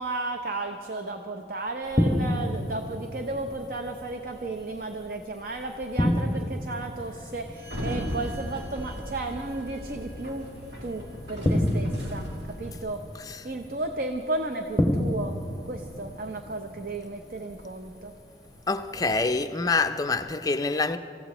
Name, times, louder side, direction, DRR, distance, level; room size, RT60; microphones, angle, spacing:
voice 1, 0.0-10.5 10.8-12.3 12.6-15.4 15.7-18.1, right 2 dB, 50° right, 0.7 m, -34 dB
sound 1, 1.9-19.4, left 1 dB, 5° right, 1.5 m, -32 dB
Sliding door, 7.6-12.8, equal, 70° right, 2.6 m, -37 dB
voice 2, 18.7-21.0, left 3 dB, 20° left, 0.4 m, -26 dB
26.5 x 15.0 x 3.0 m
head